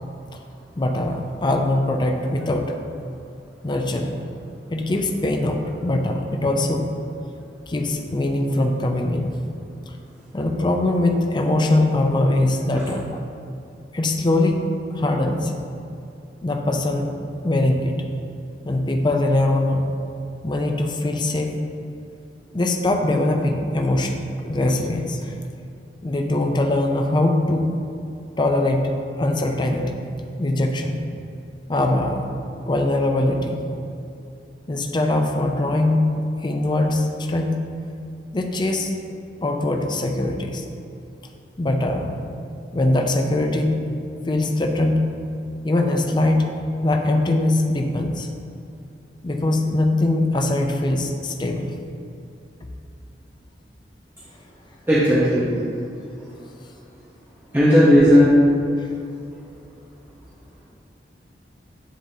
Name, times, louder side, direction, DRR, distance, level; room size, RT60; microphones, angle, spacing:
voice 1, 0.8-2.7 3.6-4.2 4.7-6.9 7.7-9.4 9.9-10.0 10.3-13.2 13.9-14.6 14.9-15.5 16.4-17.1 17.4-18.0 18.6-19.9 20.4-21.5 21.8-21.9 22.5-25.3 26.0-27.7 28.4-30.1 30.4-31.0 31.7-32.3 32.7-33.6 34.7-36.1 36.4-37.6 38.3-38.9 39.4-40.6 41.6-42.2 42.7-43.8 44.3-45.1 45.6-46.5 46.8-48.3 49.2-51.7 58.8-58.9, left 2 dB, 25° left, 3 dB, 0.5 m, -22 dB
voice 2, 54.9-55.5 57.5-58.4, equal, 10° right, -10 dB, 0.8 m, -14 dB
10.0 x 3.7 x 2.8 m, 2.6 s
head